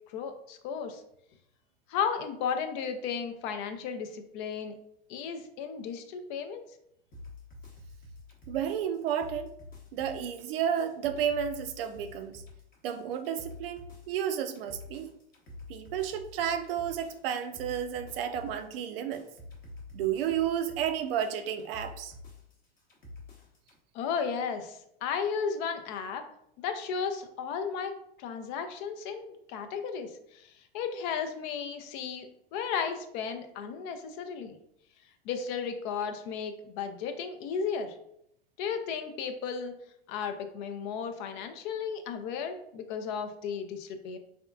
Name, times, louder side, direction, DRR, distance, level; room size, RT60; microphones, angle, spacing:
voice 1, 0.1-1.0 1.9-4.7 5.1-6.6 23.9-26.2 26.6-27.9 28.2-30.5 30.7-34.6 35.3-37.9 38.6-39.7 40.1-44.2, left 6 dB, 50° left, 7 dB, 0.5 m, -34 dB
sound 1, 7.1-23.8, left 2 dB, 30° left, 0.8 m, -49 dB
voice 2, 8.5-9.6 9.9-12.4 12.8-13.8 14.1-15.1 15.7-19.2 19.9-22.1, right 9 dB, 65° right, 9 dB, 0.4 m, -32 dB
3.4 x 2.4 x 2.3 m, 0.73 s
hypercardioid pair, 90°, 31 cm